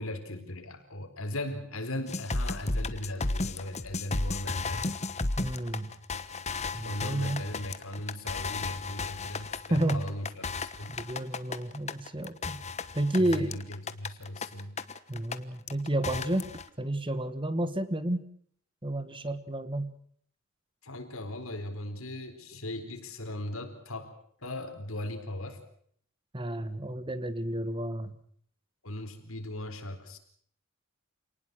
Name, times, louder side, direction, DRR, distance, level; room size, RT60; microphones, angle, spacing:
voice 1, 0.0-4.9 6.8-11.0 13.1-14.8 20.8-24.1 24.4-25.6 28.8-30.2, left 1 dB, 80° left, 6 dB, 4.4 m, -38 dB
sound 1, 2.1-15.4 15.7-16.7, left 3 dB, 30° left, 1.2 m, -34 dB
voice 2, 5.4-5.9 6.7-7.5 9.7-10.1 10.9-12.6 12.9-13.6 15.1-16.5 16.8-18.2 18.8-19.9 26.3-28.1, right 1 dB, 25° right, 13 dB, 1.5 m, -31 dB
28.0 x 19.5 x 6.3 m, 0.62 s
head